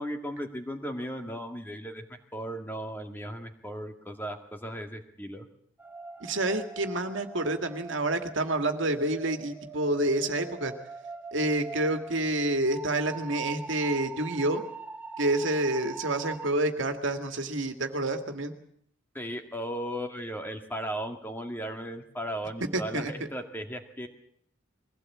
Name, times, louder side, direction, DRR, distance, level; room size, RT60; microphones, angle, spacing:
voice 1, 0.0-5.5 19.1-24.1, equal, 10° left, 5 dB, 2.0 m, -36 dB
sound 1, 5.8-16.5, right 4 dB, 10° right, 1.2 m, -43 dB
voice 2, 6.2-10.7 11.3-14.6 15.2-18.5 22.7-23.1, right 2 dB, 70° right, 6 dB, 2.1 m, -28 dB
22.5 x 16.5 x 8.6 m, 0.67 s
head